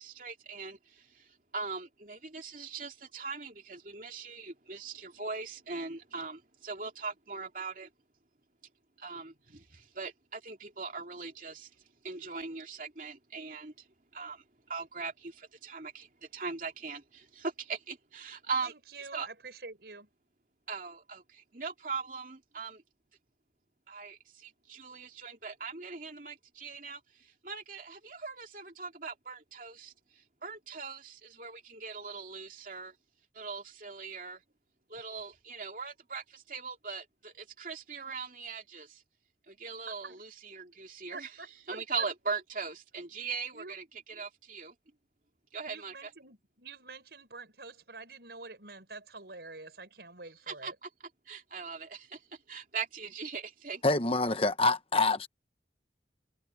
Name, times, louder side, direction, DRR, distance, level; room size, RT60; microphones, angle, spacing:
voice 1, 0.0-7.9 9.0-13.9 14.1-18.7 19.1-19.3 20.7-22.8 23.9-32.9 33.3-34.4 34.9-39.0 39.5-41.3 41.7-44.7 45.5-46.1 50.5-50.9 51.3-53.8, right 4 dB, 50° right, 2.9 m, -40 dB
voice 2, 18.6-20.1 39.9-40.2 41.1-41.8 43.5-43.8 45.7-50.7, right 3 dB, 65° right, 5.1 m, -47 dB
voice 3, 53.8-55.3, left 3 dB, 30° left, 1.1 m, -26 dB
head